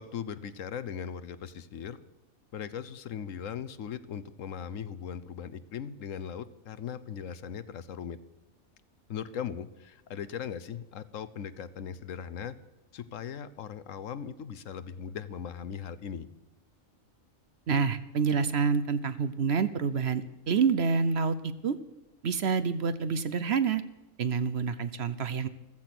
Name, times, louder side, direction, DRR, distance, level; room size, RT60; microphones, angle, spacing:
voice 1, 0.0-2.0 2.5-8.2 9.1-12.6 12.9-16.3, left 8 dB, 70° left, 14 dB, 1.2 m, -39 dB
voice 2, 17.7-21.8 22.2-23.8 24.2-25.5, right 5 dB, 55° right, 13 dB, 0.9 m, -27 dB
15.0 x 14.5 x 6.0 m, 1.0 s
omnidirectional pair, 1.4 m